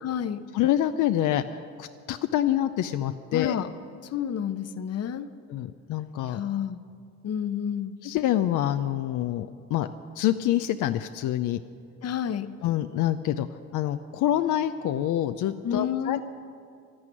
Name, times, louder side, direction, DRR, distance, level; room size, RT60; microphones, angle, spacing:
voice 1, 0.0-0.5 3.3-3.7 4.0-5.3 6.3-6.8 7.2-8.0 12.0-12.5 15.6-16.2, left 9 dB, 55° left, 12 dB, 0.8 m, -30 dB
voice 2, 0.5-3.6 5.5-6.4 8.0-9.9 10.2-11.6 12.6-13.5 13.7-16.2, left 12 dB, 80° left, 8 dB, 0.6 m, -26 dB
12.5 x 11.0 x 9.8 m, 2.3 s
cardioid pair, 90°, 30 cm